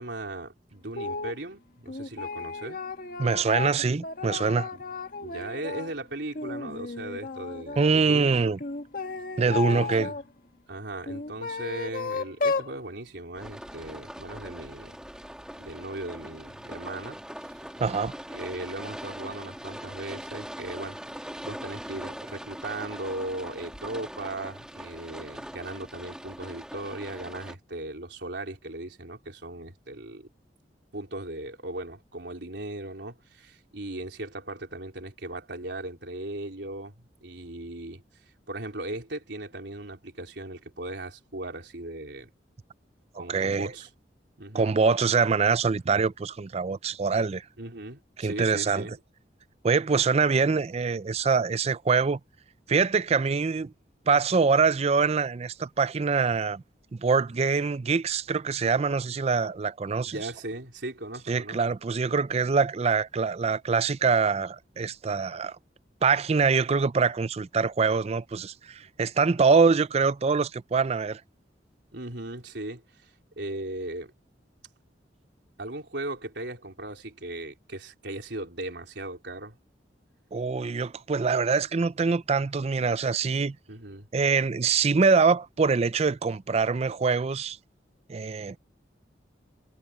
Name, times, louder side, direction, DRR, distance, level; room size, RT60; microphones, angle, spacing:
voice 1, 0.0-2.8 4.7-4.8 5.2-8.3 9.4-10.2 10.7-15.0 15.6-17.2 18.3-21.0 21.4-30.3 30.9-38.0 38.5-42.3 43.1-43.9 44.4-44.7 47.6-49.0 60.1-61.7 68.8-68.9 71.9-73.1 73.4-74.1 75.6-79.6 83.7-84.1, right 2 dB, 75° right, 3.9 m, -38 dB
sound 1, 1.0-1.4 1.9-5.9 6.3-7.9 8.6-10.2 11.0-12.7, left 4 dB, 55° left, 1.9 m, -33 dB
voice 2, 3.2-4.7 7.8-8.6 9.4-10.1 17.8-18.1 43.1-43.7 44.5-47.4 48.2-48.9 49.6-52.2 52.7-53.7 54.1-56.6 56.9-60.2 61.3-65.6 66.0-71.2 80.3-83.6 84.1-87.6 88.1-88.6, right 5 dB, 35° right, 0.4 m, -24 dB
sound 2, 13.3-27.5, equal, 5° right, 2.1 m, -41 dB
head